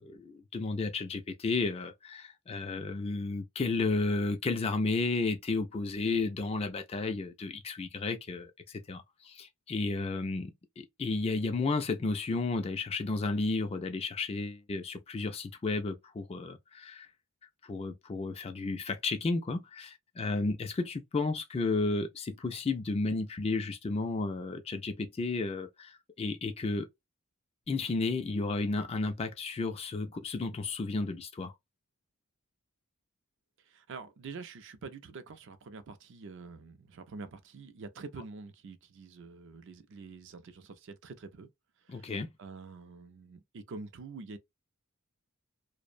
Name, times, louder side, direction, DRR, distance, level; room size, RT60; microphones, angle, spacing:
voice 1, 0.0-17.1 17.6-26.9 27.7-31.5 41.9-42.3, left 3 dB, 25° left, 0.3 m, -33 dB
voice 2, 33.7-41.5 41.8-42.1 42.4-44.4, right 4 dB, 55° right, 0.4 m, -46 dB
2.5 x 2.1 x 2.4 m
head